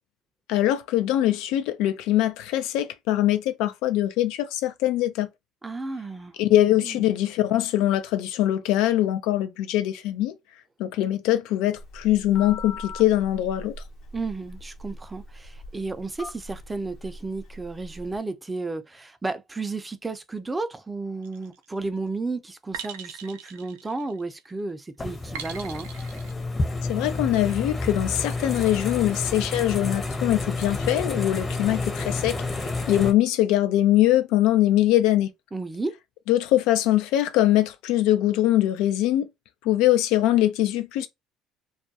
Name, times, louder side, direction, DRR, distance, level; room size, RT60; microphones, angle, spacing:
voice 1, 0.5-5.3 6.4-10.3 10.8-13.7 26.9-32.3 32.9-35.3 36.3-39.3 39.6-41.1, left 13 dB, 75° left, 0.3 m, -22 dB
voice 2, 5.6-6.4 6.8-7.0 14.1-25.9 35.5-36.0, right 3 dB, 15° right, 0.4 m, -33 dB
Telephone, 11.8-18.2, left 2 dB, 60° left, 0.8 m, -41 dB
sound 1, 21.2-21.7 22.7-24.4 25.3-26.3, right 8 dB, 90° right, 0.3 m, -40 dB
sound 2, 25.0-33.1, left 3 dB, 30° left, 0.7 m, -30 dB
2.3 x 2.1 x 2.7 m
supercardioid pair, 75°, 0 cm